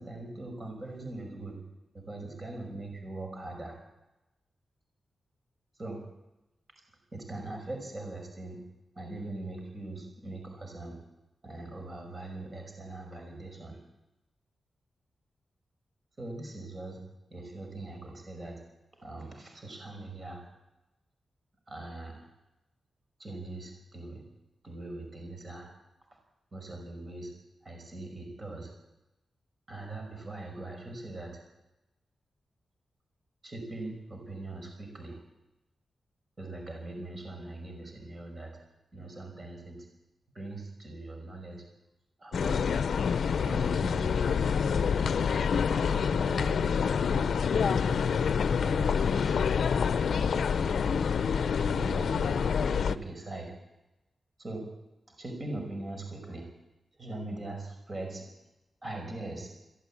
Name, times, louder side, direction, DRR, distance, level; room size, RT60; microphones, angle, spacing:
voice 1, 0.0-1.6 1.9-3.8 5.8-6.0 7.1-8.6 9.0-11.0 11.4-13.8 16.2-17.0 17.3-18.6 19.0-20.5 21.7-22.3 23.2-24.2 24.6-25.7 26.5-27.3 27.6-28.7 29.7-31.4 33.4-35.2 36.4-38.5 38.9-39.9 40.3-41.6 42.2-42.7 43.4-45.2 45.7-47.3 47.8-48.2 48.6-49.5 50.1-52.3 52.6-53.6 54.4-54.7 55.2-56.5 57.0-58.2 58.8-59.5, right 2 dB, 30° right, 2 dB, 5.6 m, -41 dB
sound 1, 42.3-53.0, left 6 dB, 70° left, 0.8 m, -27 dB
22.0 x 16.0 x 8.7 m, 0.97 s
wide cardioid pair, 150°, 0 cm